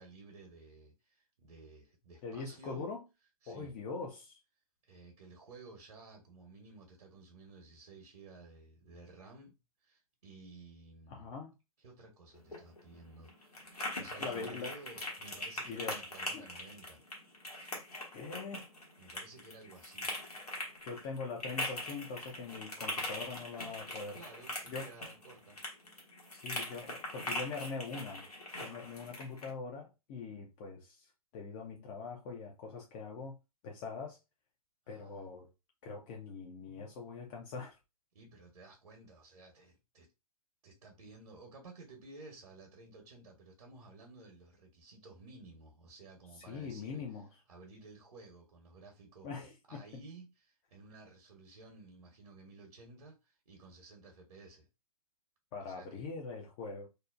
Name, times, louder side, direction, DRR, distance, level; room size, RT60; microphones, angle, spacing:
voice 1, 0.0-2.9 3.4-3.7 4.8-11.4 11.8-17.0 19.0-20.1 24.1-25.6 34.8-35.2 38.1-40.1 40.6-47.0 47.5-49.3 49.7-54.7 55.6-56.1, right 3 dB, 75° right, 0.9 m, -54 dB
voice 2, 2.2-3.0 3.5-4.4 11.1-11.6 14.2-14.7 15.7-16.0 16.3-16.4 18.1-18.7 20.8-24.2 24.7-24.9 26.3-28.2 28.6-31.1 31.3-33.4 33.6-34.2 34.9-35.5 35.8-37.8 46.5-47.3 49.2-49.8 55.5-56.9, left 4 dB, 25° left, 0.4 m, -42 dB
sound 1, 12.3-29.5, left 1 dB, 90° left, 1.1 m, -42 dB
2.7 x 2.0 x 2.3 m
hypercardioid pair, 125°, 19 cm